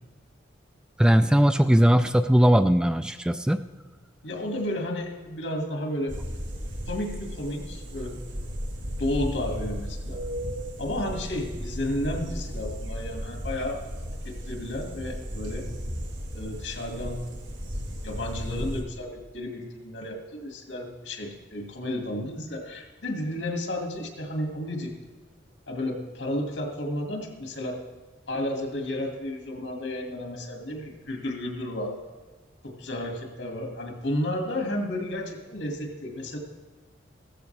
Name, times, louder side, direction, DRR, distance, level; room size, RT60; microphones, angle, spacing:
voice 1, 1.0-3.6, equal, 5° right, 9 dB, 0.3 m, -19 dB
voice 2, 4.2-6.2 6.9-8.2 9.0-10.2 10.8-13.9 14.2-15.7 16.3-17.3 18.0-24.9 25.7-27.8 28.3-32.0 32.6-36.4, left 1 dB, 85° left, 1 dB, 2.3 m, -32 dB
sound 1, 6.1-18.8, equal, 90° right, 2.2 m, -35 dB
15.5 x 14.0 x 3.4 m, 1.3 s
head